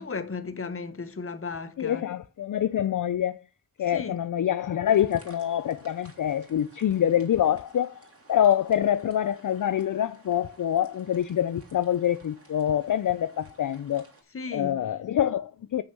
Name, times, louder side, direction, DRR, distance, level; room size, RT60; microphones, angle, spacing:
voice 1, 0.0-2.1 3.9-4.2 14.3-14.8, left 4 dB, 35° left, 1.0 m, -35 dB
voice 2, 1.8-3.4 3.8-8.0 8.3-14.0 14.5-15.8, left 10 dB, 60° left, 0.5 m, -25 dB
sound 1, 4.8-14.2, right 2 dB, 40° right, 2.8 m, -56 dB
7.1 x 6.2 x 5.9 m
wide cardioid pair, 135°, 36 cm